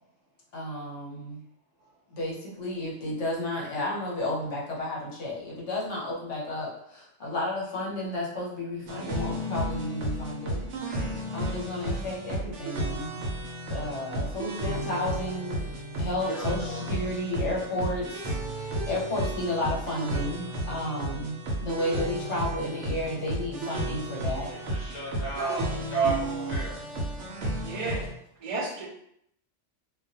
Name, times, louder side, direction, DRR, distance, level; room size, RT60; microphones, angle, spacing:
voice 1, 0.5-1.4 2.1-10.7 11.3-13.2 13.7-15.7 16.0-24.5, left 1 dB, 80° left, -3 dB, 1.1 m, -32 dB
sound 1, 8.9-28.1, right 1 dB, 80° right, 0.9 m, -33 dB
voice 2, 16.3-16.9 24.5-26.8, right 4 dB, 60° left, -6 dB, 0.8 m, -32 dB
voice 3, 25.2-25.6 27.6-28.0 28.4-28.9, right 2 dB, 55° right, -1 dB, 0.4 m, -34 dB
2.2 x 2.2 x 2.6 m, 0.74 s
omnidirectional pair, 1.2 m